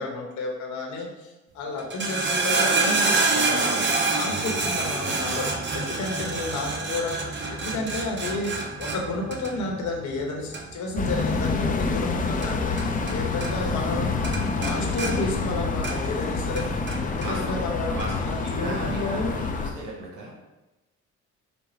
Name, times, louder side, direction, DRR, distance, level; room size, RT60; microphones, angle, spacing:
voice 1, 0.0-3.8 4.1-5.5 5.7-7.2 7.5-8.5 8.8-14.1 14.5-17.9 18.2-19.4 20.3-20.4, left 2 dB, 70° left, 0 dB, 1.1 m, -31 dB
sound 1, 1.8-13.2 13.4-14.0 14.2-16.2 16.6-17.3 18.0-18.1, right 3 dB, 40° right, 0.7 m, -27 dB
voice 2, 3.3-3.9 7.7-7.8 8.2-8.3 11.3-11.4 17.2-17.6 17.9-20.3, right 1 dB, 85° right, -3 dB, 1.0 m, -37 dB
sound 2, 10.9-19.7, left 3 dB, 25° left, 0.5 m, -27 dB
5.4 x 2.1 x 4.3 m, 1.0 s
cardioid pair, 90°, 30 cm